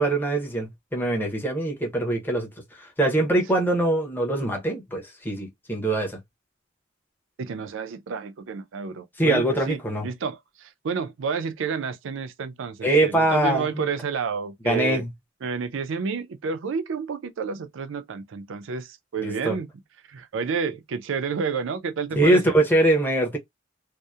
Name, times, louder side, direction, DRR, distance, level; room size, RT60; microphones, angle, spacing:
voice 1, 0.0-6.2 9.2-10.1 12.8-13.9 14.6-15.1 19.2-19.6 22.1-23.4, right 1 dB, 10° left, 0.7 m, -23 dB
voice 2, 7.4-15.0 15.4-19.7 20.1-22.5, right 5 dB, 65° right, 0.4 m, -30 dB
2.7 x 2.0 x 2.3 m
head